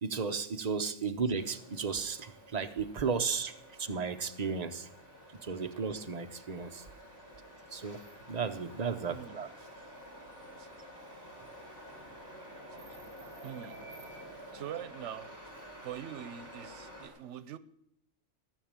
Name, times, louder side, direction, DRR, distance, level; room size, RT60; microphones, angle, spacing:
voice 1, 0.0-3.5 3.8-4.9 5.4-6.8 7.7-8.0 8.3-9.5, right 5 dB, 40° right, 0.9 m, -34 dB
sound 1, 1.3-17.1, equal, 15° left, 3.7 m, -50 dB
voice 2, 9.1-9.7 10.6-10.7 13.4-13.8 14.5-15.3 15.8-17.6, right 10 dB, 85° right, 1.0 m, -43 dB
15.0 x 6.4 x 8.8 m
omnidirectional pair, 1.2 m